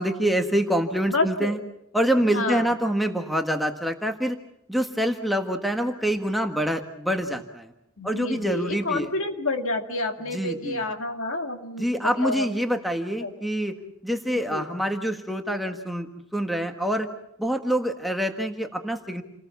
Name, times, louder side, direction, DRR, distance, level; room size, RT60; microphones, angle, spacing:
voice 1, 0.0-1.6 1.9-4.4 4.7-7.7 8.0-9.1 10.3-10.8 11.8-13.7 14.0-17.1 17.4-19.2, equal, ahead, 4 dB, 1.5 m, -26 dB
voice 2, 1.1-1.5 2.2-2.7 8.0-12.6 13.2-13.3 14.3-14.7, left 2 dB, 65° left, 5 dB, 2.4 m, -29 dB
29.0 x 20.0 x 7.2 m, 0.79 s
head